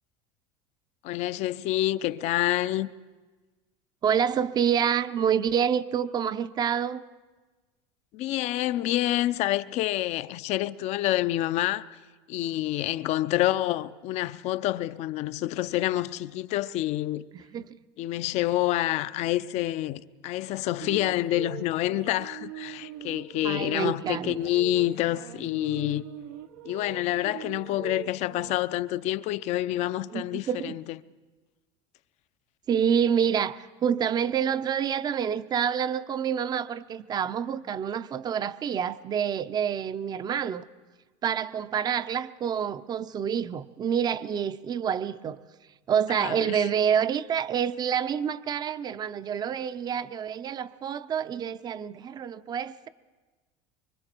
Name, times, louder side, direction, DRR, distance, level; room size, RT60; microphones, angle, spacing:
voice 1, 1.0-2.9 8.1-11.9 12.3-17.2 18.0-26.0 26.6-30.8 46.1-46.6, left 15 dB, 55° left, 0.6 m, -27 dB
voice 2, 4.0-7.0 17.3-17.8 23.4-24.4 30.1-30.8 32.7-40.6 41.2-45.4 45.9-52.9, right 8 dB, 30° right, 0.6 m, -27 dB
sound 1, 20.8-28.6, right 14 dB, 75° right, 0.8 m, -42 dB
25.0 x 23.5 x 4.5 m
supercardioid pair, 125°, 13 cm